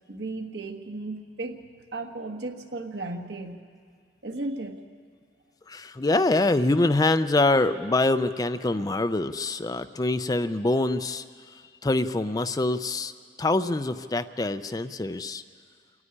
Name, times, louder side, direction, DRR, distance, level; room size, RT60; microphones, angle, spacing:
voice 1, 0.1-1.7 1.9-3.6 4.2-4.8, right 2 dB, 75° right, 3 dB, 1.5 m, -35 dB
voice 2, 5.7-11.2 11.8-13.1 13.4-15.4, left 2 dB, 20° left, 11 dB, 0.4 m, -24 dB
27.0 x 9.6 x 9.9 m, 2.1 s
head